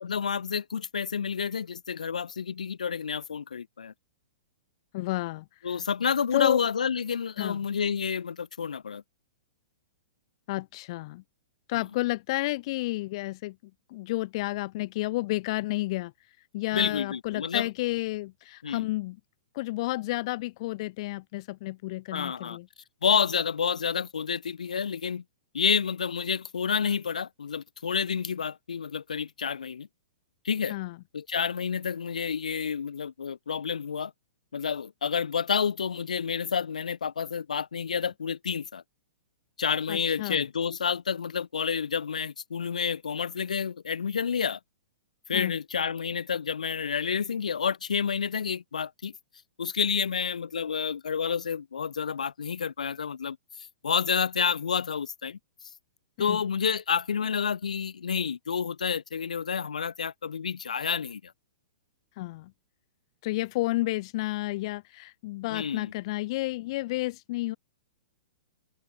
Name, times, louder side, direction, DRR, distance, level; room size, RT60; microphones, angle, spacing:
voice 1, 0.0-3.9 5.6-9.0 11.8-11.9 16.7-17.7 18.6-18.9 22.1-22.6 23.0-25.2 25.5-29.9 30.4-30.7 31.1-34.1 34.5-38.8 39.6-44.6 45.3-49.1 49.6-53.4 53.8-55.4 56.2-61.3 65.5-65.9, left 6 dB, 90° left, 1.5 m, -29 dB
voice 2, 4.9-5.7 6.3-6.6 7.4-7.6 10.5-11.2 11.7-13.6 13.9-16.1 16.5-19.2 19.5-22.7 30.7-31.0 39.9-40.4 45.3-45.5 56.2-56.4 62.2-62.5 63.2-67.6, left 19 dB, 50° left, 0.6 m, -31 dB
open air
hypercardioid pair, 130°, 4 cm